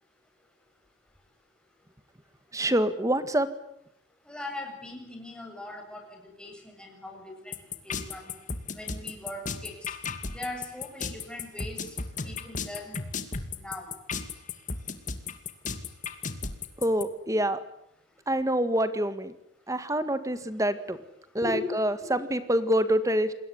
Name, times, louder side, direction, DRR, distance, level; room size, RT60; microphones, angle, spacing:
voice 1, 2.5-3.5 16.8-17.6 18.3-19.3 19.7-21.0 21.3-23.3, right 1 dB, 15° right, 12 dB, 1.8 m, -26 dB
voice 2, 4.3-8.3 8.7-9.9 10.3-11.9 12.2-13.0 13.5-13.9 21.4-21.6 22.0-22.2, left 2 dB, 5° left, 1 dB, 7.9 m, -40 dB
sound 1, 7.5-17.0, left 5 dB, 40° left, 2.5 m, -34 dB
28.0 x 21.5 x 9.9 m, 0.79 s
head